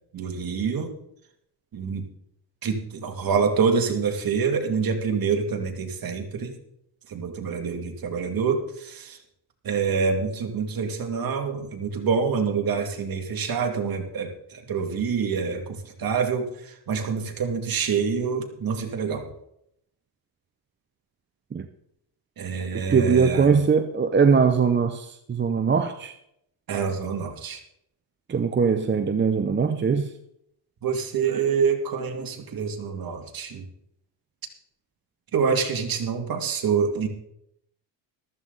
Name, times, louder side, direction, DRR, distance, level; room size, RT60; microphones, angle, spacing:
voice 1, 0.1-0.9 1.7-2.1 2.6-6.6 7.1-9.2 9.6-19.3 22.4-23.5 26.7-27.6 30.8-33.6 35.3-37.1, right 6 dB, 50° right, 3 dB, 2.5 m, -26 dB
voice 2, 22.9-26.1 28.3-30.1, right 5 dB, 25° right, 7 dB, 0.8 m, -21 dB
14.0 x 13.5 x 4.1 m, 0.75 s
cardioid pair, 110°, 45 cm